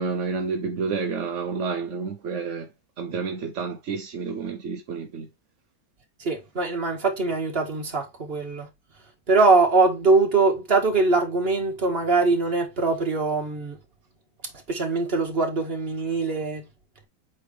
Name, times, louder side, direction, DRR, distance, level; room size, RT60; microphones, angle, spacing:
voice 1, 0.0-2.7 3.0-5.3, right 5 dB, 55° right, 0.9 m, -29 dB
voice 2, 6.2-8.7 9.3-13.8 14.7-16.7, right 3 dB, 35° right, 1.9 m, -22 dB
7.9 x 4.5 x 3.4 m
omnidirectional pair, 1.8 m